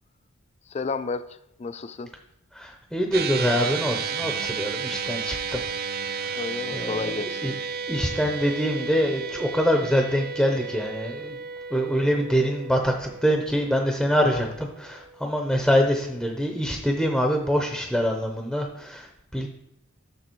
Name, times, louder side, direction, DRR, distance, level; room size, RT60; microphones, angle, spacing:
voice 1, 0.7-1.3 1.6-2.1 6.4-7.5 14.2-14.5, left 4 dB, 30° left, 13 dB, 0.3 m, -32 dB
voice 2, 2.5-5.6 6.2-6.4 6.7-7.5 7.9-11.4 11.7-19.5, equal, ahead, 2 dB, 0.7 m, -25 dB
sound 1, 3.1-15.7, right 6 dB, 45° right, 0.5 m, -33 dB
6.9 x 6.9 x 4.5 m, 0.81 s
head